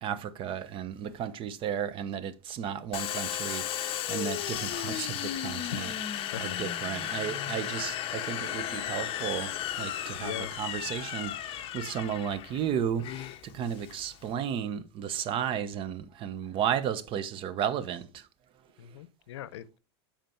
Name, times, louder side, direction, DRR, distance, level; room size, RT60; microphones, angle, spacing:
voice 1, 0.0-18.3, right 9 dB, 40° right, 0.8 m, -34 dB
Domestic sounds home sounds, 2.9-14.3, left 11 dB, 40° left, 0.8 m, -35 dB
voice 2, 10.1-10.6 18.8-19.8, left 11 dB, 90° left, 0.6 m, -40 dB
7.8 x 4.4 x 4.4 m
supercardioid pair, 130°, 14 cm